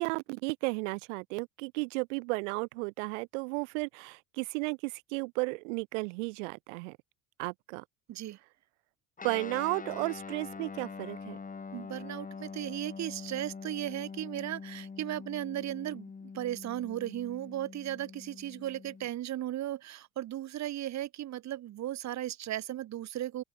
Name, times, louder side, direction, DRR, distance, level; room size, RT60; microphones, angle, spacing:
voice 1, 0.0-7.0 7.4-7.8 9.2-11.4, right 30 dB, 70° right, 0.8 m, -34 dB
Guitar, 9.2-19.1, left 5 dB, 20° left, 2.3 m, -44 dB
voice 2, 11.7-23.4, right 13 dB, 45° right, 1.5 m, -36 dB
open air
hypercardioid pair, 80°, 38 cm